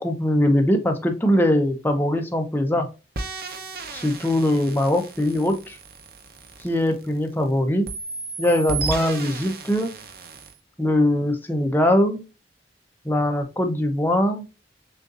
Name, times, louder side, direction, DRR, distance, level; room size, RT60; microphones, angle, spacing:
voice 1, 0.0-2.9 3.9-5.8 6.6-7.9 8.4-9.9 10.8-12.2 13.0-14.4, left 1 dB, 10° left, 4 dB, 0.8 m, -21 dB
sound 1, 3.2-7.4 7.9-10.6, right 3 dB, 55° right, 0.7 m, -34 dB
6.5 x 2.6 x 2.5 m, 0.28 s
head